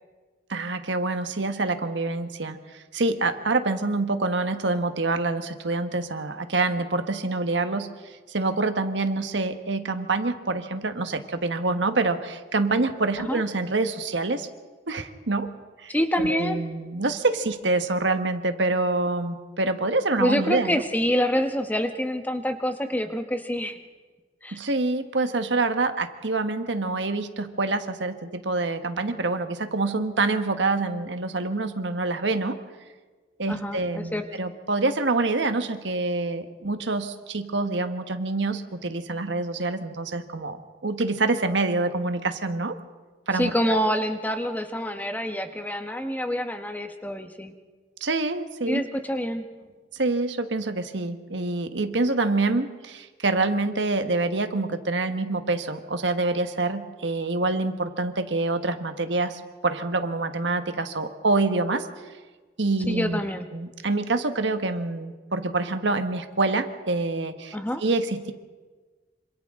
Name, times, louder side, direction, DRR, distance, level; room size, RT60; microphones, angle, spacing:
voice 1, 0.5-14.5 14.9-15.5 15.8-20.8 24.5-32.6 33.4-42.8 43.3-43.8 48.0-48.8 49.9-61.9 62.6-63.2 63.5-68.3, right 3 dB, 85° right, 8 dB, 1.4 m, -26 dB
voice 2, 15.9-16.6 20.2-23.8 24.4-24.6 33.5-34.3 43.3-47.5 48.7-49.5 62.9-63.5 67.5-67.8, equal, 10° left, 6 dB, 1.2 m, -26 dB
27.0 x 26.5 x 3.7 m, 1.3 s
head